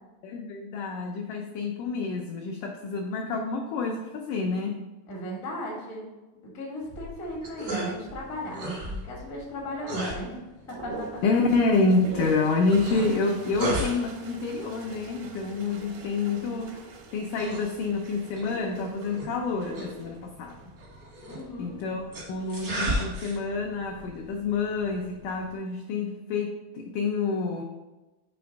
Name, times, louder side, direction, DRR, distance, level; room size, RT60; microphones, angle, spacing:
voice 1, 0.2-4.8 11.2-16.8 17.1-20.6 21.6-27.6, left 3 dB, 85° left, 2 dB, 1.8 m, -28 dB
voice 2, 5.1-6.1 6.4-10.4 10.7-11.2 21.3-21.8, equal, 60° left, -4 dB, 0.8 m, -36 dB
sound 1, 6.8-25.5, right 1 dB, 60° right, 1.0 m, -37 dB
sound 2, 10.7-21.4 22.5-23.1, right 2 dB, 80° right, 2.7 m, -43 dB
5.7 x 3.4 x 5.1 m, 1.1 s
omnidirectional pair, 4.2 m